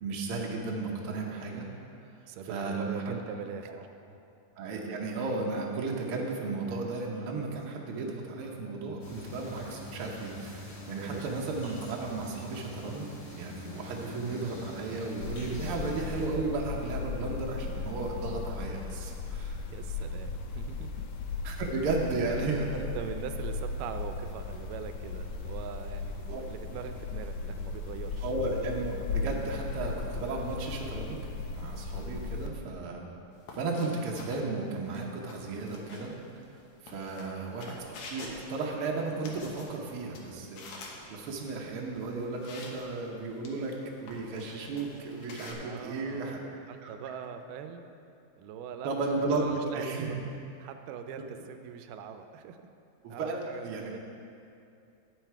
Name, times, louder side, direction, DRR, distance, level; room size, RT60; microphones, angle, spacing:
voice 1, 0.0-1.7 2.5-3.2 4.6-13.1 13.3-19.6 21.4-22.7 26.3-26.4 28.2-33.1 33.5-36.1 36.8-37.8 38.1-46.4 46.8-46.9 48.8-50.1 53.0-53.9, right 3 dB, 70° right, -1 dB, 1.3 m, -34 dB
voice 2, 2.3-4.2 11.0-11.3 11.6-11.7 19.7-20.9 22.3-22.5 22.8-28.3 37.1-37.4 45.6-46.4 46.7-47.9 48.4-48.9 49.3-50.2 50.6-52.6 53.1-54.0, right 7 dB, 85° right, 7 dB, 2.2 m, -42 dB
sound 1, 9.0-16.3, left 2 dB, 35° left, 2.7 m, -45 dB
sound 2, 15.2-32.5, left 4 dB, 80° left, 2.2 m, -37 dB
sound 3, 33.3-45.5, left 3 dB, 65° left, 2.2 m, -49 dB
9.0 x 8.9 x 4.7 m, 2.6 s
omnidirectional pair, 3.7 m